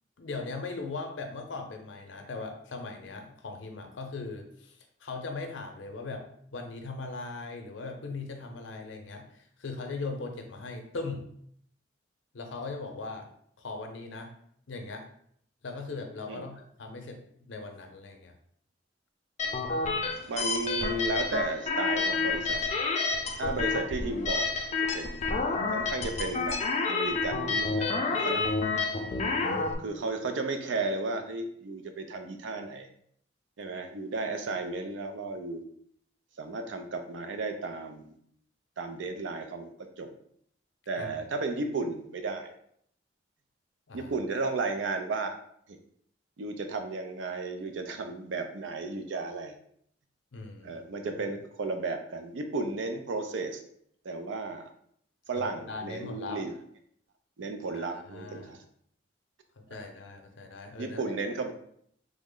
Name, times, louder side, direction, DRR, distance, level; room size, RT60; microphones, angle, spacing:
voice 1, 0.2-6.3 6.5-11.3 12.3-13.3 13.6-14.3 14.7-15.1 15.6-18.3 28.4-28.5 28.7-29.6 41.0-41.1 43.9-44.1 50.3-51.1 55.3-56.4 57.7-58.5 59.6-61.0, left 3 dB, 90° left, 4 dB, 0.6 m, -39 dB
sound 1, 19.4-29.7, left 4 dB, 40° left, 0.4 m, -29 dB
voice 2, 20.3-22.6 23.4-25.3 25.7-26.6 26.9-28.5 29.8-32.9 33.6-35.6 36.4-38.2 38.8-40.1 40.9-42.5 43.9-45.4 45.7-45.8 46.4-49.5 50.6-53.6 54.0-54.7 55.3-56.5 57.4-58.6 59.7-59.9 60.8-61.5, right 3 dB, 80° right, 6 dB, 0.5 m, -34 dB
3.3 x 2.0 x 3.7 m, 0.66 s
head